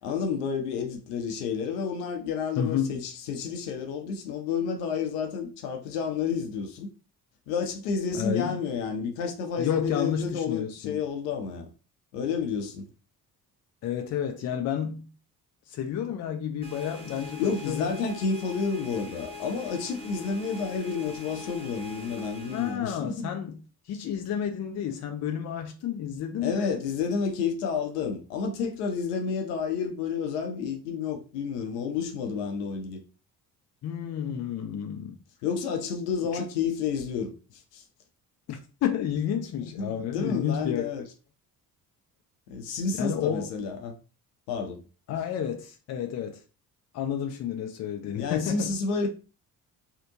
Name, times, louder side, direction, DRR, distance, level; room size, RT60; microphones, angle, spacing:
voice 1, 0.0-6.9 7.5-11.7 12.1-12.9 17.4-23.3 26.4-33.0 35.4-37.8 39.8-41.0 42.5-43.9 44.5-44.8 45.1-45.2 48.1-49.1, left 5 dB, 65° left, 0.7 m, -30 dB
voice 2, 2.6-2.9 8.1-8.6 9.6-11.0 13.8-15.1 15.7-18.0 22.5-23.6 23.9-26.8 33.8-35.2 36.3-36.4 38.5-41.1 43.0-43.5 45.1-46.4 46.9-48.7, left 9 dB, 35° left, 0.5 m, -31 dB
sound 1, 16.6-22.8, left 2 dB, 10° left, 1.0 m, -43 dB
2.7 x 2.1 x 2.7 m
figure-of-eight pair, 50°, 49 cm